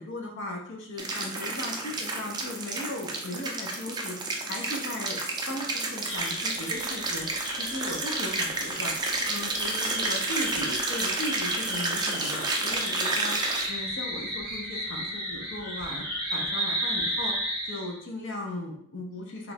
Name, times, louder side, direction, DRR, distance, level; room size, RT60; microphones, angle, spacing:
voice 1, 0.0-4.2 4.5-5.2 5.5-7.3 7.5-9.0 9.3-13.4 13.7-17.4 17.7-19.5, left 1 dB, 60° left, 1 dB, 0.7 m, -37 dB
sound 1, 1.0-13.7, right 3 dB, 20° right, 0.4 m, -31 dB
sound 2, 6.1-18.0, equal, ahead, 1.2 m, -34 dB
3.2 x 2.5 x 3.3 m, 0.68 s
head